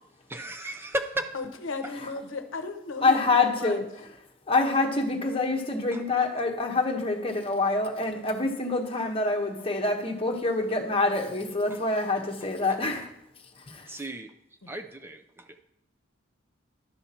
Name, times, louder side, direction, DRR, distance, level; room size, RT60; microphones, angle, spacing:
voice 1, 0.3-1.3 5.9-6.0 11.7-11.8 12.7-12.8 13.9-14.3 14.7-15.6, right 1 dB, 10° right, 7 dB, 0.4 m, -35 dB
voice 2, 1.3-3.8 14.6-14.7, left 3 dB, 80° left, 8 dB, 0.8 m, -35 dB
voice 3, 3.0-3.9 4.5-13.1 13.5-13.9, left 3 dB, 30° left, 3 dB, 1.1 m, -26 dB
11.5 x 5.7 x 4.3 m, 0.79 s
head